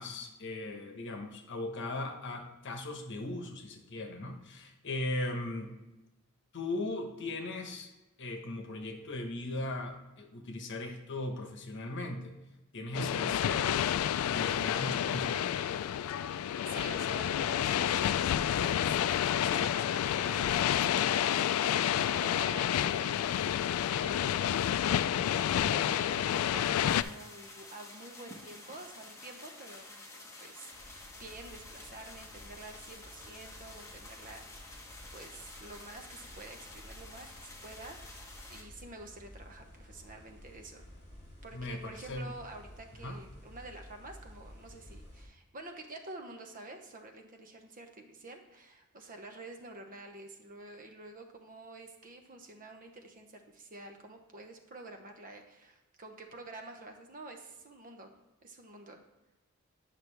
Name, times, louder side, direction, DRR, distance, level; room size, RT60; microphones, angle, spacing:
voice 1, 0.0-5.8 6.5-7.9 8.2-12.4 12.7-13.7 14.3-15.5 19.4-19.7 41.5-42.3 43.0-43.2, left 2 dB, 60° left, 4 dB, 1.1 m, -38 dB
sound 1, 12.9-27.0, left 10 dB, 85° left, 0.3 m, -29 dB
voice 2, 16.7-20.5 20.9-23.2 23.4-24.7 25.7-40.9 41.4-58.1 58.4-59.0, right 2 dB, 40° right, 4 dB, 0.9 m, -49 dB
sound 2, 26.9-38.6, left 2 dB, 15° left, 1.1 m, -50 dB
sound 3, 30.7-45.3, equal, 30° left, 3.0 m, -53 dB
9.2 x 5.7 x 3.3 m, 1.0 s
head